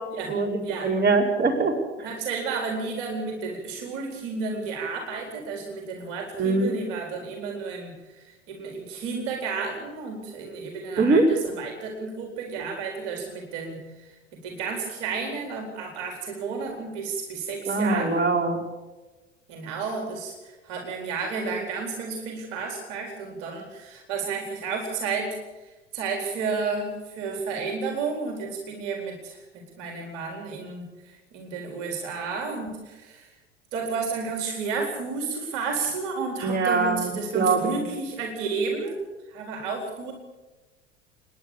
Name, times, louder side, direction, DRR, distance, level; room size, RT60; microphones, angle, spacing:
voice 1, 0.3-2.1 6.4-6.7 11.0-11.2 17.7-18.6 36.4-37.7, right 3 dB, 30° right, 2 dB, 4.8 m, -23 dB
voice 2, 2.0-13.8 14.4-18.2 19.5-25.4 25.9-29.4 29.8-30.8 31.3-33.3 33.7-39.0 39.3-40.1, right 4 dB, 55° right, 2 dB, 4.3 m, -32 dB
28.5 x 11.0 x 8.6 m, 1.2 s
hypercardioid pair, 80°, 36 cm